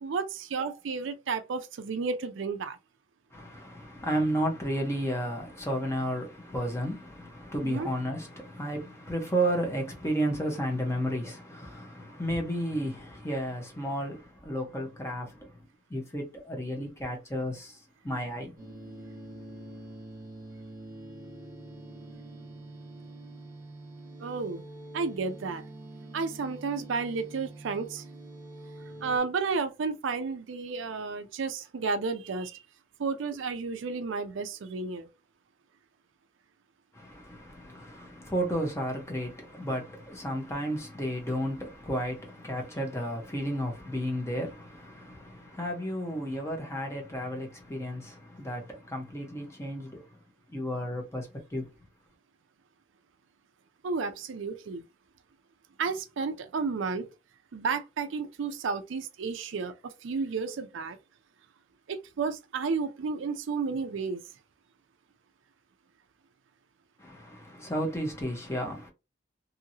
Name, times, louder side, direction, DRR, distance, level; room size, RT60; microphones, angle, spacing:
voice 1, 0.0-2.8 7.6-7.9 24.2-24.6 24.9-25.6 26.1-28.0 29.0-32.6 33.0-35.1 53.8-54.8 55.8-57.1 57.5-61.0 61.9-64.2, right 4 dB, 70° right, 0.4 m, -32 dB
voice 2, 3.3-15.6 15.9-18.5 36.9-50.1 50.5-51.7 67.0-68.9, equal, 15° left, 0.8 m, -33 dB
sound 1, 18.6-29.2, right 2 dB, 15° right, 1.1 m, -45 dB
2.8 x 2.7 x 2.7 m
head